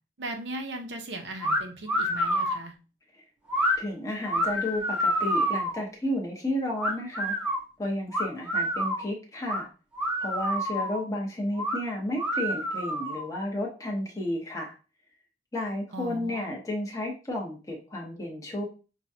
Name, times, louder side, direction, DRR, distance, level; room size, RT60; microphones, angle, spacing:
voice 1, 0.2-2.7 15.9-16.5, right 2 dB, 85° right, 5 dB, 0.8 m, -38 dB
sound 1, 1.4-1.6 1.9-2.6 3.5-3.8 4.3-5.8 6.8-7.6 8.1-9.1 9.5-9.6 10.0-11.0 11.6-11.8 12.2-13.3, equal, 5° right, 0.8 m, -28 dB
voice 2, 3.8-7.3 7.8-9.7 10.2-14.7 15.5-18.6, left 1 dB, 20° left, -2 dB, 1.0 m, -32 dB
6.0 x 2.3 x 2.7 m, 0.33 s
head